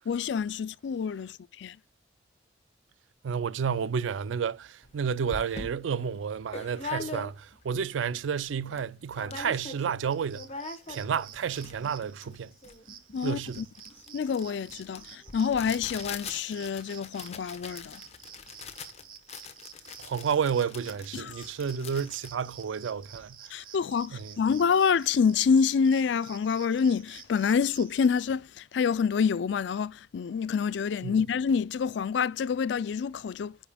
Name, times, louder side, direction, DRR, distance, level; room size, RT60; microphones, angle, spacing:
voice 1, 0.1-1.8 13.1-13.7 14.1-18.0 21.1-21.5 23.5-33.6, left 6 dB, 65° left, 0.3 m, -27 dB
voice 2, 3.2-10.5 10.9-12.5 13.2-13.6 20.0-23.4 24.1-24.4 31.0-31.2, right 7 dB, 90° right, 0.4 m, -31 dB
sound 1, 4.8-4.9 5.3-7.7 8.1-8.2 8.4-8.8 9.1-10.0 10.2-23.3, left 4 dB, 35° left, 1.0 m, -42 dB
sound 2, 10.1-28.1, right 8 dB, 50° right, 0.9 m, -51 dB
9.8 x 5.1 x 2.2 m
head